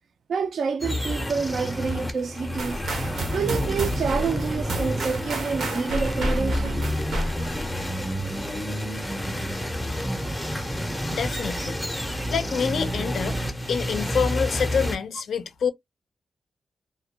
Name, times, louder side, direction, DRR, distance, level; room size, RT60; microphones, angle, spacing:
voice 1, 0.3-2.8 3.3-6.8, right 5 dB, 60° right, 0.3 m, -28 dB
sound 1, 0.8-15.0, equal, 5° left, 0.5 m, -29 dB
sound 2, 2.6-7.7, right 1 dB, 75° right, 0.7 m, -30 dB
voice 2, 11.1-11.8 12.3-13.4 13.7-15.7, left 6 dB, 70° left, 0.4 m, -26 dB
2.2 x 2.1 x 2.7 m
wide cardioid pair, 150°, 0 cm